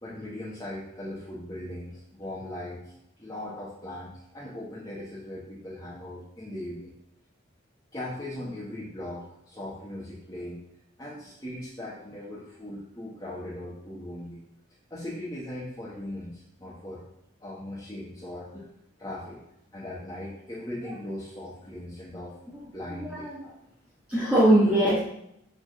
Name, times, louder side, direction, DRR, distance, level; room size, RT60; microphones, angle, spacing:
voice 1, 0.0-6.9 7.9-10.6 11.0-14.4 14.9-17.0 17.4-18.7 19.0-19.4 19.7-22.3 22.7-23.3 24.1-24.2, left 1 dB, 20° left, -9 dB, 1.7 m, -39 dB
voice 2, 23.0-23.4 24.1-25.0, right 1 dB, 5° right, -7 dB, 1.4 m, -21 dB
6.8 x 4.3 x 6.6 m, 0.78 s
head